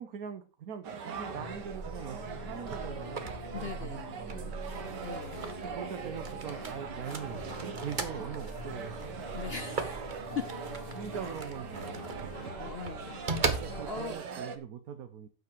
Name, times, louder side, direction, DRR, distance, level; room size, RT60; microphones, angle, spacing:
voice 1, 0.0-5.0 5.6-9.5 10.3-10.4 10.9-12.5 13.5-15.3, right 8 dB, 65° right, 8 dB, 1.3 m, -42 dB
sound 1, 0.8-14.6, right 6 dB, 80° right, 1.9 m, -42 dB
sound 2, 1.1-13.9, left 3 dB, 30° left, 2.5 m, -47 dB
sound 3, 1.5-14.1, right 3 dB, 30° right, 1.2 m, -40 dB
voice 2, 3.5-4.2 5.0-5.5 9.3-10.0 10.3-10.4 12.4-14.2, left 7 dB, 65° left, 11 dB, 0.5 m, -40 dB
9.4 x 7.4 x 4.5 m, 0.31 s
omnidirectional pair, 1.8 m